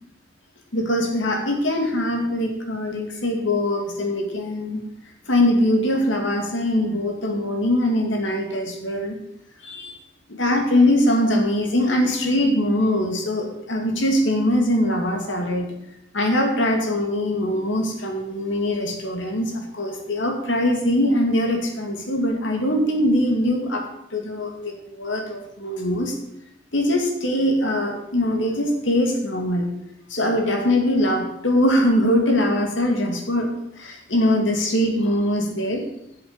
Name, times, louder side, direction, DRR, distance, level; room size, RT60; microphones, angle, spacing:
voice 1, 0.7-4.8 5.3-9.2 9.6-9.9 10.3-15.7 16.1-26.1 26.7-29.7 30.1-33.5 33.8-35.9, left 1 dB, 80° left, 2 dB, 2.4 m, -22 dB
7.9 x 7.9 x 8.0 m, 0.81 s
head